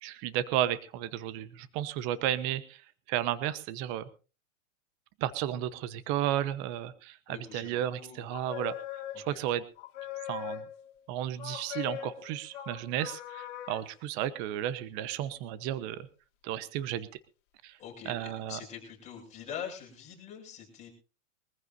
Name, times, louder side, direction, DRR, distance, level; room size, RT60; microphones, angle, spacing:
voice 1, 0.0-2.8 3.1-4.1 5.2-9.6 10.3-10.6 11.1-16.1 16.4-17.1 17.6-17.8 18.0-18.6, right 12 dB, 30° right, 15 dB, 1.0 m, -33 dB
voice 2, 7.3-8.2 9.3-9.4 17.8-20.9, left 8 dB, 20° left, -2 dB, 6.7 m, -44 dB
sound 1, 8.3-9.5 9.8-10.9 11.4-13.9, left 12 dB, 40° left, 3.1 m, -41 dB
23.5 x 14.5 x 2.7 m, 0.33 s
supercardioid pair, 160°, 38 cm